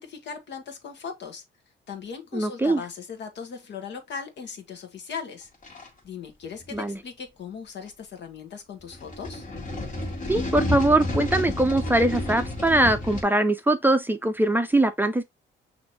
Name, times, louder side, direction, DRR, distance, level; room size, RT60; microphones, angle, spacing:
voice 1, 0.0-1.4 1.9-5.5 6.0-9.4, left 6 dB, 65° left, 1.3 m, -38 dB
voice 2, 2.3-2.8 6.7-7.0 10.3-15.2, right 2 dB, 10° right, 0.5 m, -22 dB
sound 1, 5.6-5.9 6.6-6.8 8.9-13.2, left 1 dB, 40° left, 1.7 m, -30 dB
6.1 x 2.8 x 2.7 m
cardioid pair, 90°, 20 cm